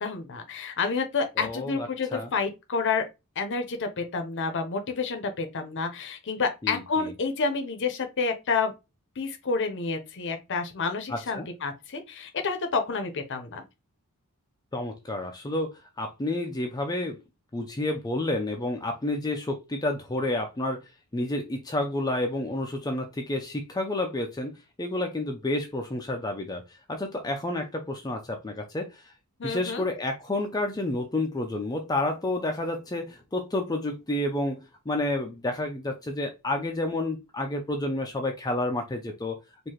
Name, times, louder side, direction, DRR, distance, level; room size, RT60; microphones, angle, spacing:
voice 1, 0.0-3.0 3.4-8.7 9.2-13.6 29.4-29.8, left 4 dB, 55° left, 0.7 m, -29 dB
voice 2, 1.4-2.3 6.6-7.1 11.1-11.5 14.7-17.2 17.5-20.8 21.1-24.5 24.8-29.1 29.4-39.4, left 1 dB, 15° left, 0.5 m, -30 dB
4.7 x 2.6 x 2.9 m
head